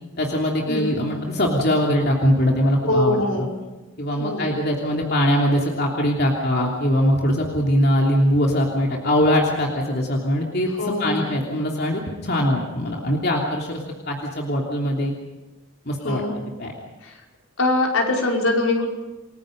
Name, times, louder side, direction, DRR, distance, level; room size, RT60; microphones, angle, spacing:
voice 1, 0.2-3.5 4.0-10.7 11.0-13.8 14.1-15.1 15.8-16.2 16.6-16.7, equal, 50° left, -1 dB, 3.1 m, -21 dB
voice 2, 0.7-1.0 2.9-3.5 4.2-4.5 10.8-11.3 16.0-16.4 17.0-17.2 17.6-18.9, left 2 dB, 75° left, 0 dB, 5.4 m, -23 dB
29.0 x 21.0 x 5.4 m, 1.1 s
head